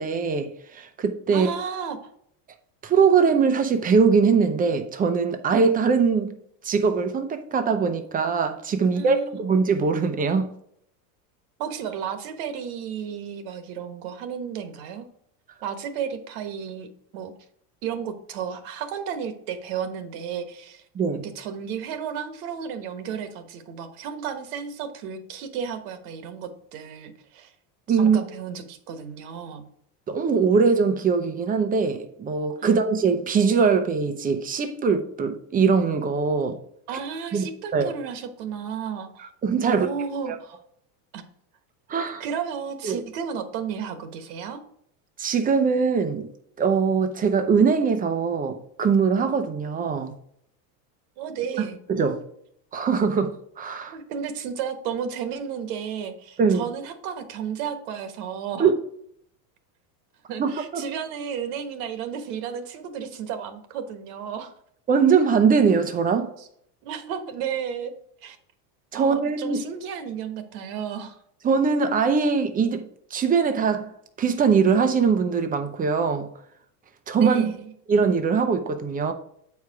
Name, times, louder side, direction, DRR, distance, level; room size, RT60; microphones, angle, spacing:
voice 1, 0.0-1.5 2.8-6.3 6.6-10.5 20.9-21.3 27.9-28.2 30.1-36.6 37.3-37.5 37.7-37.9 39.4-39.9 40.3-40.4 41.9-42.2 42.8-43.0 45.2-46.3 46.6-50.1 51.6-52.2 52.7-53.9 56.4-56.7 58.6-58.7 60.4-60.9 64.9-66.3 68.9-69.6 71.4-73.9 74.2-76.3 77.1-77.5 77.9-79.1, right 5 dB, 15° right, 0.7 m, -22 dB
voice 2, 1.3-2.0 8.8-9.5 11.6-15.1 15.6-16.9 17.1-17.3 17.8-20.8 21.3-27.5 27.9-29.7 32.6-32.7 36.9-39.3 39.6-40.6 41.1-41.2 42.0-44.6 51.2-51.8 53.9-58.7 60.3-64.5 66.4-66.5 66.8-67.9 68.2-68.4 68.9-71.2 77.2-77.7, right 7 dB, 65° right, 1.4 m, -33 dB
8.1 x 4.9 x 4.8 m
supercardioid pair, 135°, 48 cm